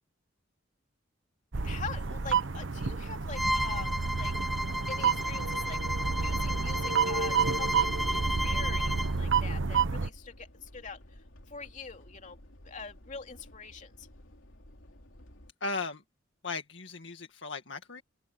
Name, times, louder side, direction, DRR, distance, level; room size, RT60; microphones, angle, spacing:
sound 1, 1.5-10.1, right 5 dB, 75° right, 0.9 m, -30 dB
voice 1, 1.6-4.3 4.9-5.8 6.2-11.2 11.5-12.4 12.6-14.1, left 5 dB, 40° left, 3.0 m, -44 dB
Bowed string instrument, 3.4-9.1, equal, ahead, 0.4 m, -33 dB
sound 2, 7.4-15.5, left 1 dB, 85° left, 3.2 m, -54 dB
voice 2, 15.6-16.0 16.4-18.0, left 3 dB, 65° left, 2.0 m, -36 dB
head